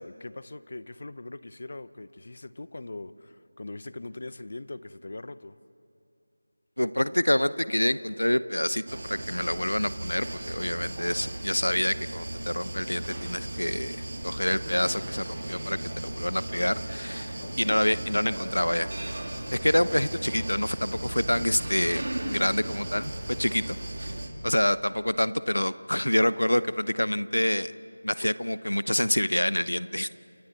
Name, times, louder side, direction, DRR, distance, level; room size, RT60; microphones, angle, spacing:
voice 1, 0.0-5.6 17.2-17.6 19.8-20.0, left 2 dB, 50° left, 16 dB, 0.8 m, -41 dB
voice 2, 6.8-18.9 19.5-23.1 23.4-23.8 24.0-24.1 24.4-27.7 28.0-30.1, left 1 dB, 90° left, 16 dB, 0.8 m, -27 dB
sound 1, 8.9-24.3, right 1 dB, 60° right, 3.1 m, -36 dB
29.0 x 28.5 x 4.2 m, 2.7 s
figure-of-eight pair, 170°, 0 cm